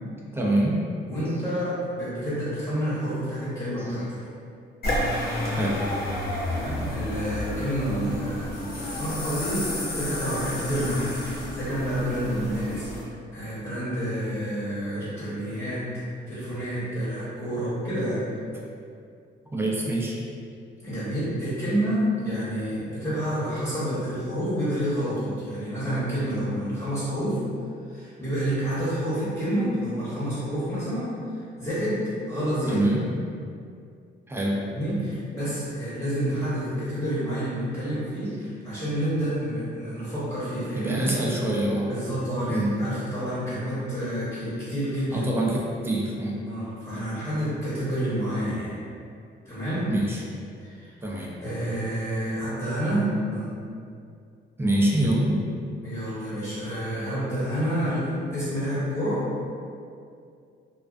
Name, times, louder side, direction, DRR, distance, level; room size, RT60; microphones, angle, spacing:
voice 1, 0.3-0.9 5.5-5.8 19.5-20.1 32.7-33.1 34.3-34.7 40.7-41.9 42.5-42.8 45.1-46.5 49.9-50.2 51.0-51.4 54.6-55.4, right 1 dB, 10° right, -3 dB, 0.4 m, -25 dB
voice 2, 1.1-4.1 6.5-15.8 16.3-18.2 20.8-27.4 27.9-32.8 34.7-41.1 41.9-45.3 46.4-48.8 49.4-49.9 50.6-50.9 51.4-53.5 55.8-59.3, equal, 20° left, -12 dB, 0.9 m, -29 dB
sound 1, 4.8-13.0, left 1 dB, 50° left, 0.7 m, -31 dB
2.3 x 2.3 x 2.4 m, 2.4 s
cardioid pair, 90°, 20 cm